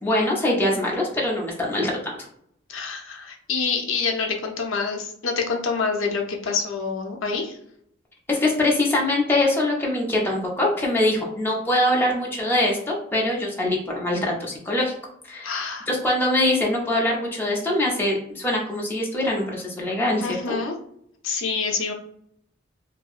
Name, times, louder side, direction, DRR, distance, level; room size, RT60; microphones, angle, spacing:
voice 1, 0.0-2.1 8.3-14.9 15.2-15.5 15.9-20.6, left 1 dB, 10° left, -3 dB, 0.5 m, -23 dB
voice 2, 2.7-7.6 15.4-15.9 20.2-20.8 21.2-21.9, left 5 dB, 80° left, 2 dB, 0.6 m, -27 dB
2.8 x 2.6 x 2.4 m, 0.68 s
head